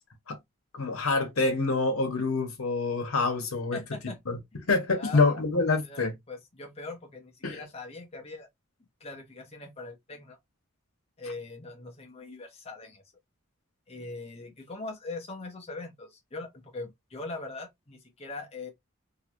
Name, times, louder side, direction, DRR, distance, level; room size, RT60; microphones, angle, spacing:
voice 1, 0.7-3.8 4.3-4.4 4.6-6.1 7.4-7.6, left 3 dB, 90° left, 1.1 m, -26 dB
voice 2, 3.7-4.2 5.0-5.3 5.8-8.5 9.0-10.4 11.2-13.0 13.9-18.7, left 3 dB, 30° left, 0.9 m, -41 dB
2.8 x 2.6 x 2.9 m
head